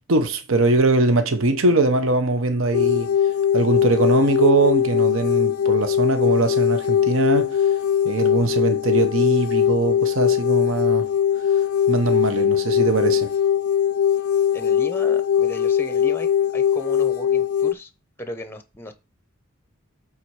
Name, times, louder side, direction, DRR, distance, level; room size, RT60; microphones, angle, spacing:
voice 1, 0.0-3.1 3.5-7.6 8.0-11.1 11.9-13.3, right 3 dB, 65° right, 0.9 m, -21 dB
sound 1, 2.7-17.7, left 9 dB, 75° left, 0.3 m, -20 dB
voice 2, 14.5-17.9 18.2-18.9, left 1 dB, 10° left, 0.7 m, -35 dB
8.2 x 3.8 x 4.7 m
head